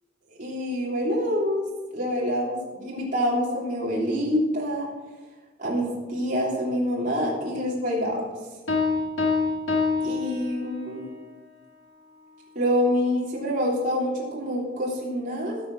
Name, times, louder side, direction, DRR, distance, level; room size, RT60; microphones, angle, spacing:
voice 1, 0.4-1.6 1.9-4.9 5.6-8.2 10.0-11.0 12.5-15.6, equal, 40° right, -5 dB, 3.4 m, -26 dB
Piano, 8.7-11.0, left 4 dB, 85° left, 1.7 m, -26 dB
16.5 x 6.3 x 6.2 m, 1.2 s
head